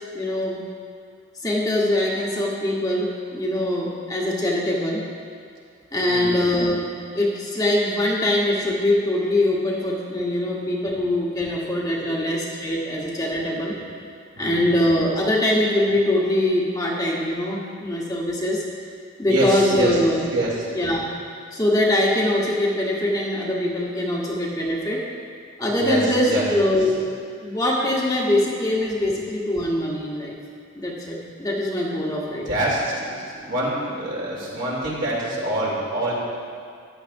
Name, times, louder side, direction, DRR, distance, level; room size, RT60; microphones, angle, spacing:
voice 1, 0.1-0.6 1.4-5.0 5.9-6.9 7.1-13.8 14.4-18.6 19.2-20.3 20.7-21.1 21.5-25.1 25.6-27.1 27.4-30.4 30.8-32.5, left 1 dB, 20° left, -3 dB, 1.1 m, -23 dB
voice 2, 11.9-12.2 12.9-13.0 13.8-13.9 14.3-14.7 19.3-20.0 20.3-20.7 25.8-26.5 32.5-33.1 33.3-36.1, right 1 dB, 65° right, -6 dB, 2.8 m, -25 dB
14.0 x 10.5 x 2.6 m, 2.3 s
head